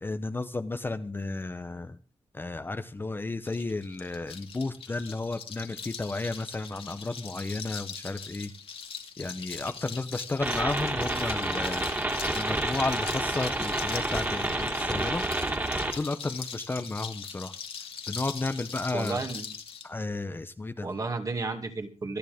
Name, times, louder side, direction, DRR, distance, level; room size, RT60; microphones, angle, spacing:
voice 1, 0.0-2.0 2.3-8.5 9.2-11.9 12.3-15.2 15.9-17.5 18.1-19.2 19.8-20.9, left 2 dB, 20° left, 9 dB, 0.8 m, -33 dB
sound 1, 3.5-19.9, left 6 dB, 65° left, 2.2 m, -41 dB
sound 2, 10.4-15.9, right 2 dB, 20° right, 2.9 m, -29 dB
voice 2, 18.9-19.6 20.8-22.2, right 3 dB, 35° right, 5 dB, 2.4 m, -32 dB
26.5 x 10.0 x 3.6 m, 0.36 s
wide cardioid pair, 170°, 10 cm